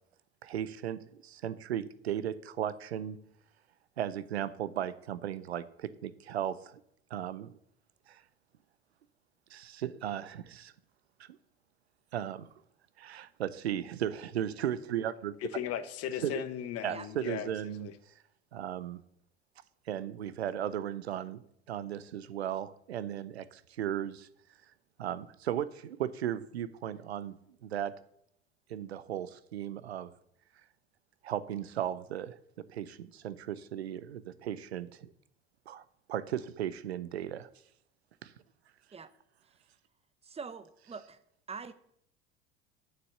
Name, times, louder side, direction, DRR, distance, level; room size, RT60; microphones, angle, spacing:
voice 1, 0.4-3.2 4.0-6.8 7.1-7.6 8.1-8.2 9.5-10.7 11.2-11.3 12.1-12.5 13.0-15.3 16.2-16.3 16.8-17.9 18.5-19.0 19.9-21.4 21.7-24.3 25.0-28.0 28.7-30.1 31.2-35.1 35.7-35.8 36.1-37.5 38.2-38.3, right 10 dB, 90° right, 0.6 m, -36 dB
voice 2, 15.4-17.5 17.8-17.9, left 10 dB, 50° left, 1.0 m, -36 dB
voice 3, 40.2-41.2 41.5-41.7, right 5 dB, 20° right, 0.8 m, -43 dB
6.8 x 6.4 x 7.2 m
hypercardioid pair, 80°, 31 cm